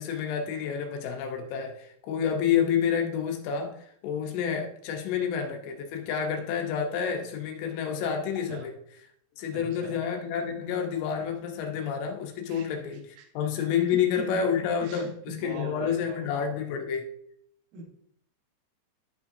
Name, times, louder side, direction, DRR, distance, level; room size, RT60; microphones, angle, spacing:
voice 1, 0.0-3.8 4.0-8.7 9.4-17.1, left 7 dB, 80° left, 3 dB, 3.4 m, -29 dB
voice 2, 9.5-10.0 12.5-13.3 13.9-14.4 14.8-16.2 17.7-17.8, right 3 dB, 85° right, 2 dB, 1.7 m, -41 dB
12.5 x 5.6 x 2.7 m, 0.68 s
omnidirectional pair, 5.7 m